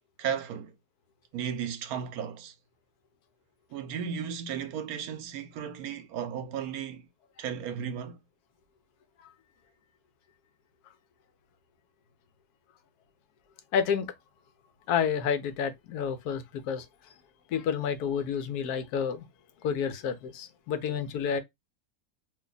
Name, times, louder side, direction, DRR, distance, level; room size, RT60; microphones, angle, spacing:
voice 1, 0.2-0.7 1.3-2.5 3.7-7.1 7.4-8.2, right 8 dB, 75° right, 1.1 m, -35 dB
voice 2, 13.7-14.1 14.9-16.8 17.5-19.3 19.6-21.4, left 7 dB, 90° left, 1.1 m, -29 dB
2.8 x 2.2 x 3.8 m
omnidirectional pair, 1.6 m